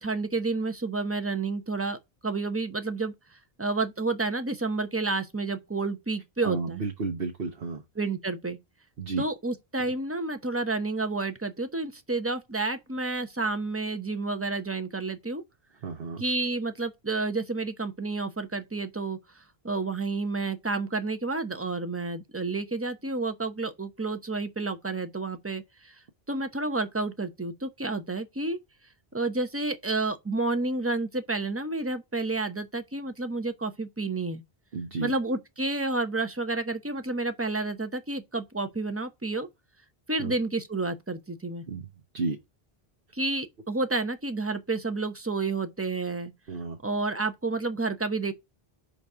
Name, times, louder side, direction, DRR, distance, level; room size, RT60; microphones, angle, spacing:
voice 1, 0.0-2.0 2.2-3.1 3.6-6.8 8.0-8.6 9.2-15.4 16.2-19.2 19.6-25.9 26.3-28.6 29.1-34.4 35.0-39.5 40.1-41.6 43.1-46.3 46.8-48.3, right 3 dB, 15° right, 0.7 m, -30 dB
voice 2, 6.4-7.8 9.0-9.2 15.8-16.2 34.7-35.1 40.2-40.3 41.7-41.9 42.1-42.4 46.5-46.8, right 4 dB, 70° right, 1.2 m, -32 dB
5.2 x 4.0 x 6.0 m
omnidirectional pair, 1.0 m